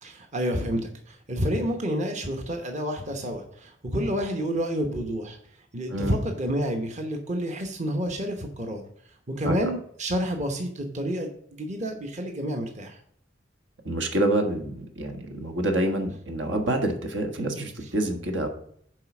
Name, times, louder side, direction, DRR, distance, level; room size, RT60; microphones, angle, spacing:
voice 1, 0.0-5.4 5.7-8.8 9.3-13.0, equal, 40° right, 3 dB, 1.0 m, -29 dB
voice 2, 13.8-18.5, right 1 dB, 80° right, 4 dB, 1.5 m, -27 dB
7.6 x 4.8 x 6.1 m, 0.66 s
head